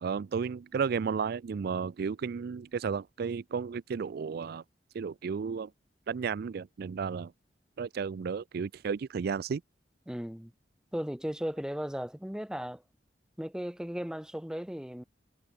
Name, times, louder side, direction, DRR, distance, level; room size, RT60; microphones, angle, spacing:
voice 1, 0.0-4.6 4.9-5.7 6.1-7.3 7.8-9.6, right 6 dB, 55° right, 0.4 m, -33 dB
voice 2, 10.1-10.5 10.9-12.8 13.4-15.0, equal, 5° right, 0.8 m, -36 dB
head